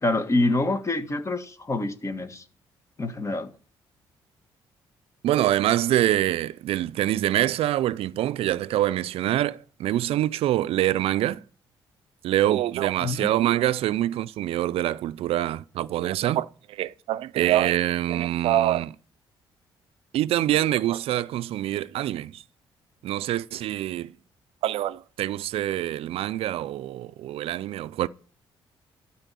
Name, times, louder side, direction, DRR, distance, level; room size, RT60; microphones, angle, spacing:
voice 1, 0.0-2.4 3.0-3.5 13.0-13.3, left 2 dB, 30° left, 1.6 m, -26 dB
voice 2, 5.2-11.4 12.2-18.9 20.1-22.4 23.0-24.1 24.6-28.1, right 13 dB, 75° right, 0.4 m, -25 dB
12.5 x 4.5 x 8.3 m
supercardioid pair, 65°, 10 cm